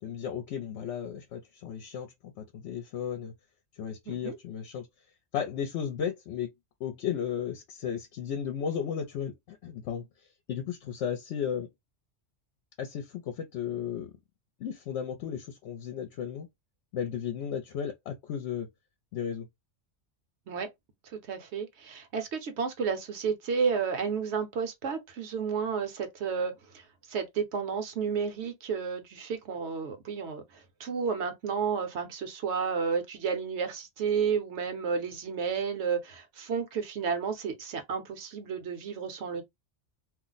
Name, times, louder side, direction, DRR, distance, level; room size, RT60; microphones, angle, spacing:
voice 1, 0.0-3.3 3.8-4.9 5.3-6.5 6.8-11.7 12.8-14.2 14.6-16.5 16.9-18.7 19.1-19.5, left 8 dB, 70° left, 0.9 m, -34 dB
voice 2, 4.1-4.4 20.5-20.7 21.3-39.4, right 6 dB, 70° right, 1.0 m, -32 dB
2.5 x 2.1 x 3.8 m
omnidirectional pair, 1.2 m